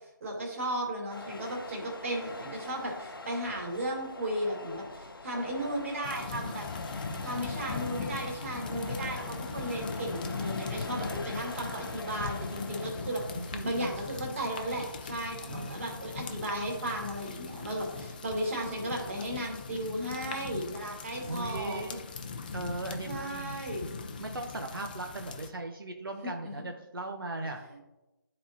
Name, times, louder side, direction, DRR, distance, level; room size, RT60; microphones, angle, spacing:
voice 1, 0.2-6.7 7.2-21.8 23.1-23.9 26.2-26.7, right 1 dB, 40° right, -1 dB, 2.0 m, -35 dB
sound 1, 1.1-20.7, left 2 dB, 80° left, 0.8 m, -45 dB
sound 2, 6.0-25.5, left 4 dB, 25° left, 0.5 m, -39 dB
voice 2, 7.0-7.4 13.3-13.9 15.4-15.8 21.3-22.0 22.5-23.6 24.2-27.6, right 2 dB, 75° right, 2 dB, 0.9 m, -38 dB
12.0 x 4.3 x 2.8 m, 1.0 s
figure-of-eight pair, 160°, 12 cm